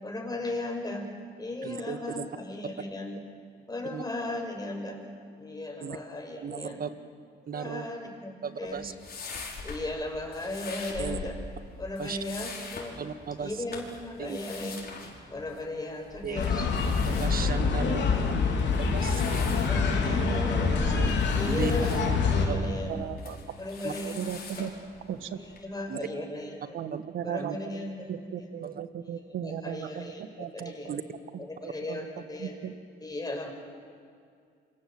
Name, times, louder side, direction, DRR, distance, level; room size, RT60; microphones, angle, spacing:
voice 1, 0.0-1.1 1.4-3.2 3.7-5.0 5.4-6.8 7.5-8.9 9.6-11.4 11.8-12.9 13.4-14.8 15.3-16.7 17.8-18.0 19.6-20.9 21.3-23.0 23.6-24.3 24.6-24.7 25.4-26.8 27.2-28.5 29.0-30.9 31.5-32.6 33.0-33.5, left 1 dB, 20° left, 2 dB, 6.4 m, -36 dB
voice 2, 1.6-2.3 3.9-4.0 5.8-6.0 6.4-6.9 7.5-7.9 8.4-8.9 11.0-11.2 12.0-12.2 13.0-13.5 14.2-14.4 16.2-16.4 17.1-18.1 18.8-19.4 21.4-21.7 22.5-22.7 23.8-23.9 25.9-26.0 26.9-27.1 27.4-27.6 28.6-28.8 30.9-31.0, right 7 dB, 50° right, 11 dB, 1.6 m, -35 dB
sound 1, 8.7-25.6, left 3 dB, 50° left, 5.5 m, -42 dB
sound 2, 16.3-22.5, left 5 dB, 65° left, 4.1 m, -26 dB
voice 3, 20.4-21.2 21.9-22.2 22.5-23.4 24.0-24.7 25.1-25.4 26.7-31.0 31.3-31.4 31.9-32.0 32.4-32.7, right 9 dB, 80° right, 10 dB, 1.6 m, -37 dB
28.0 x 24.5 x 7.8 m, 2.3 s
cardioid pair, 90°, 20 cm